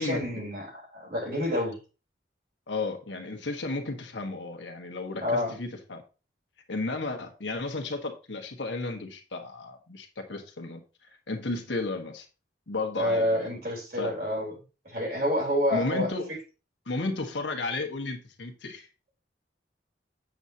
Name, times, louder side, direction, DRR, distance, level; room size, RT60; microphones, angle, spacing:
voice 1, 0.0-1.8 5.2-5.5 13.0-14.5 14.9-16.1, left 1 dB, 55° right, -2 dB, 3.7 m, -28 dB
voice 2, 2.7-6.0 6.7-10.8 11.3-12.3 12.7-13.5 14.0-14.1 15.7-16.3 16.9-18.9, left 3 dB, 75° left, 4 dB, 1.4 m, -33 dB
8.0 x 7.3 x 2.8 m, 0.32 s
head